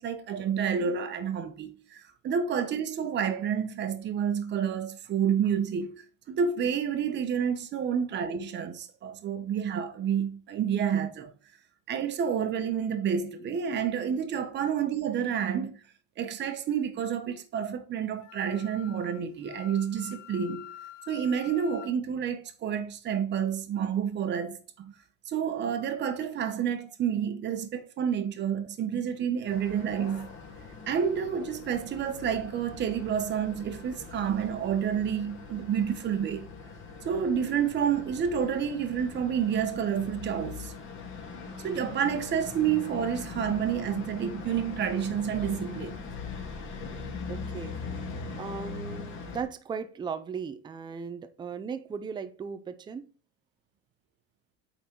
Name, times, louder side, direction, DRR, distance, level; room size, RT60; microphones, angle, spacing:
voice 1, 0.0-11.3 11.9-15.8 16.2-20.7 21.1-24.9 25.3-30.4 30.9-36.5 37.0-40.7 41.6-46.1, right 8 dB, 35° right, 1.1 m, -29 dB
Wind instrument woodwind instrument, 18.2-21.9, left 14 dB, 80° left, 1.2 m, -47 dB
sound 1, 29.5-49.4, left 5 dB, 40° left, 2.2 m, -41 dB
voice 2, 47.3-47.8 48.4-53.1, right 6 dB, 15° right, 0.5 m, -37 dB
8.5 x 4.0 x 4.5 m
cardioid pair, 150°, 32 cm